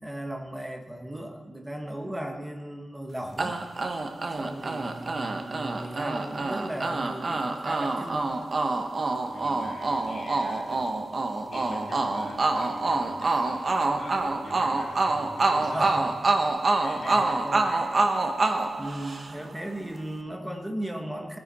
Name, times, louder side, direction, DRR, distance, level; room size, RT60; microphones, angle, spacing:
voice 1, 0.0-3.6 4.4-8.3 15.4-16.2 17.0-17.7 18.8-21.4, right 1 dB, 10° right, 3 dB, 1.1 m, -36 dB
sound 1, 3.4-19.6, right 3 dB, 40° right, 0.8 m, -27 dB
voice 2, 9.2-10.8 11.5-15.9 16.7-17.8, left 2 dB, 75° left, -4 dB, 3.3 m, -43 dB
18.5 x 9.8 x 4.1 m, 1.3 s
wide cardioid pair, 165°, 0 cm